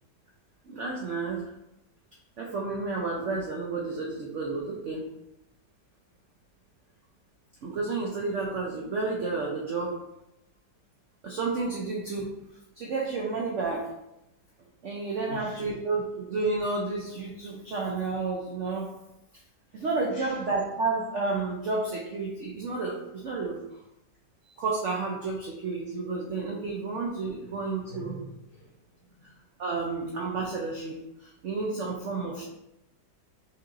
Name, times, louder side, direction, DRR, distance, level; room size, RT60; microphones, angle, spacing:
voice 1, 0.6-1.5 2.4-5.1 7.6-10.0 11.2-12.3 12.8-13.9 14.8-19.0 19.7-23.6 24.4-28.2 29.2-29.3 29.6-32.4, right 3 dB, 70° right, -2 dB, 0.7 m, -31 dB
voice 2, 15.3-15.8 19.7-19.9 20.1-20.4 23.7-23.8 27.4-27.5 27.9-29.3, equal, 65° left, -8 dB, 2.3 m, -45 dB
6.3 x 2.9 x 2.5 m, 0.88 s
omnidirectional pair, 1.9 m